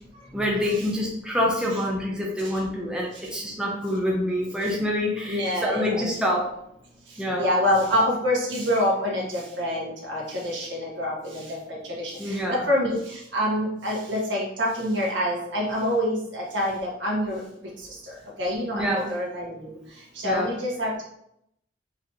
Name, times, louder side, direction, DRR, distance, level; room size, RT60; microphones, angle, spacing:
voice 1, 0.3-6.5 7.2-7.6 12.2-12.7 18.7-19.1 20.2-20.5, equal, 5° right, -3 dB, 0.7 m, -26 dB
voice 2, 5.3-6.1 7.4-11.4 11.7-13.0 13.3-17.4 18.4-19.7 20.2-21.0, left 1 dB, 75° right, -3 dB, 1.6 m, -26 dB
4.9 x 3.1 x 2.9 m, 0.74 s
head